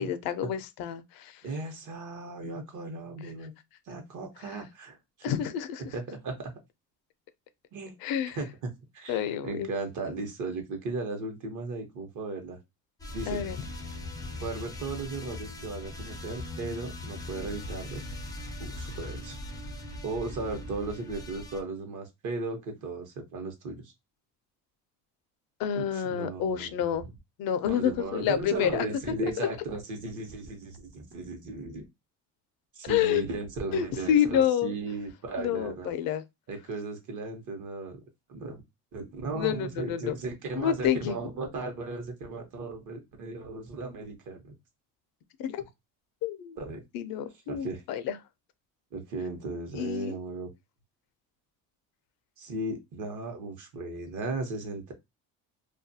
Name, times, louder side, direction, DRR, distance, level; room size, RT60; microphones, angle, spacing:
voice 1, 0.0-1.4 2.4-2.5 4.5-4.6 5.2-5.8 8.0-8.4 9.1-9.7 13.3-13.6 25.6-27.0 27.4-28.9 29.4-29.5 32.8-33.2 33.7-34.7 35.4-36.2 39.3-40.2 40.5-41.2 45.4-45.6 46.2-46.6 46.9-48.2 49.7-50.1, left 9 dB, 65° left, 0.5 m, -28 dB
voice 2, 1.4-3.5 3.9-5.4 5.9-6.5 7.7-7.9 8.4-8.5 8.9-12.6 13.1-13.4 14.4-18.0 18.6-19.4 20.0-23.9 25.7-26.8 27.6-31.8 32.7-35.9 36.5-38.0 38.3-38.6 38.9-44.5 46.6-46.8 47.5-47.8 48.9-50.5 52.4-54.9, right 3 dB, 50° right, 0.9 m, -36 dB
sound 1, 13.0-21.6, left 2 dB, 10° left, 0.4 m, -40 dB
2.4 x 2.2 x 2.6 m
cardioid pair, 110°, 39 cm